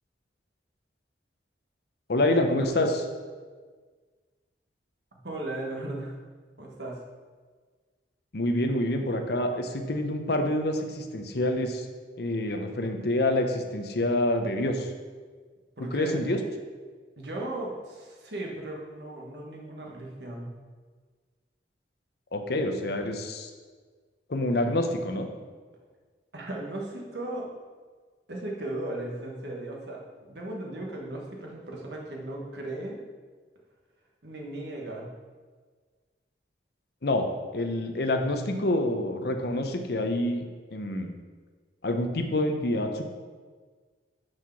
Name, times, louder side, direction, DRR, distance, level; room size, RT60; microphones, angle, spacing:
voice 1, 2.1-3.1 8.3-11.9 12.2-14.9 15.9-16.4 22.3-23.5 24.3-25.3 37.0-40.4 40.7-41.1 41.8-43.0, left 1 dB, 60° left, 5 dB, 0.8 m, -27 dB
voice 2, 5.2-6.2 6.6-7.0 15.8-16.3 17.2-20.5 24.5-24.6 26.3-27.5 28.3-33.0 34.2-35.1, right 1 dB, 65° right, -1 dB, 1.3 m, -36 dB
6.4 x 4.7 x 5.8 m, 1.5 s
head